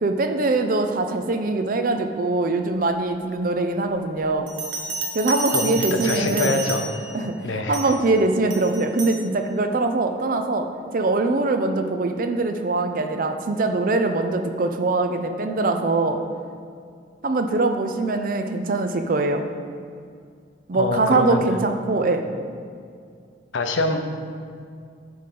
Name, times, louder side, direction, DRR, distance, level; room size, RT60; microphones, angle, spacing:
voice 1, 0.0-4.5 5.1-6.6 7.1-10.7 10.9-16.2 17.2-19.4 20.7-22.2, right 2 dB, 45° right, 6 dB, 0.5 m, -22 dB
Bell, 4.5-7.2 7.7-8.0 8.5-9.2, right 3 dB, 75° right, 1.1 m, -30 dB
voice 2, 5.5-6.9 7.4-7.8 20.7-21.4 23.5-24.0, left 2 dB, 80° left, 5 dB, 0.7 m, -24 dB
10.0 x 3.8 x 5.8 m, 2.2 s
head